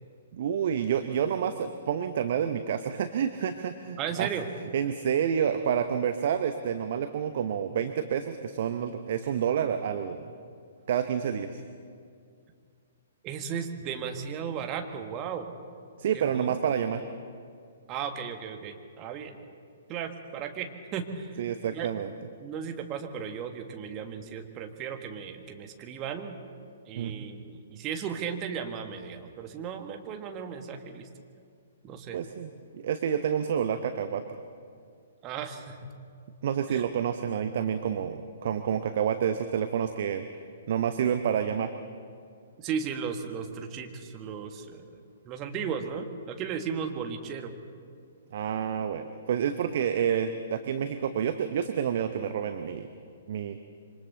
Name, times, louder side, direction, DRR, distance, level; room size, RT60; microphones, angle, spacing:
voice 1, 0.4-4.3 4.7-10.2 10.9-11.5 16.0-17.0 21.4-22.1 27.0-27.3 32.1-34.2 36.4-40.3 40.7-41.7 48.3-52.9 53.3-53.6, right 8 dB, 45° right, 8 dB, 0.9 m, -29 dB
voice 2, 4.0-4.5 13.2-15.5 16.1-16.6 17.9-19.4 19.9-21.4 21.7-21.9 22.4-26.3 26.9-31.1 31.8-32.2 35.2-35.9 36.7-36.9 42.6-44.9 45.3-47.5, right 7 dB, 25° right, 5 dB, 1.6 m, -35 dB
27.0 x 24.5 x 4.0 m, 2.2 s
figure-of-eight pair, 120°, 0 cm